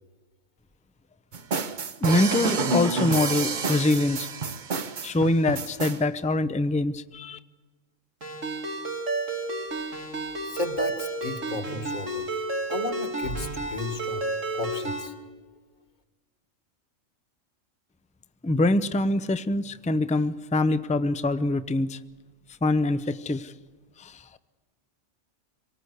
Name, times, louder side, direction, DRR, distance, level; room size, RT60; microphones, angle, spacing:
sound 1, 1.3-6.0, right 4 dB, 40° right, 0.9 m, -29 dB
voice 1, 2.0-4.3 5.0-7.4 18.4-22.0 22.6-23.5 24.0-24.2, left 2 dB, 10° left, 12 dB, 0.4 m, -24 dB
Ringtone, 8.2-15.1, right 2 dB, 85° right, 3.1 m, -31 dB
voice 2, 10.3-12.3 12.7-14.3 14.5-15.2, left 2 dB, 35° left, 6 dB, 1.7 m, -34 dB
26.0 x 18.5 x 8.0 m, 1.4 s
omnidirectional pair, 1.3 m